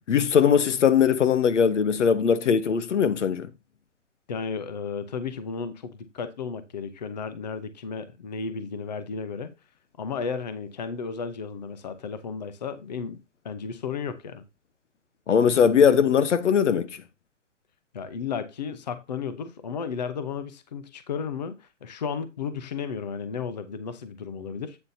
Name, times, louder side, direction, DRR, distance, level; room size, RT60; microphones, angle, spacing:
voice 1, 0.1-3.5 15.3-17.0, left 7 dB, 75° left, 1.1 m, -20 dB
voice 2, 4.3-9.5 10.0-13.2 13.4-14.4 17.9-24.8, left 6 dB, 35° left, 0.8 m, -33 dB
8.9 x 7.5 x 2.7 m
hypercardioid pair, 180°, 36 cm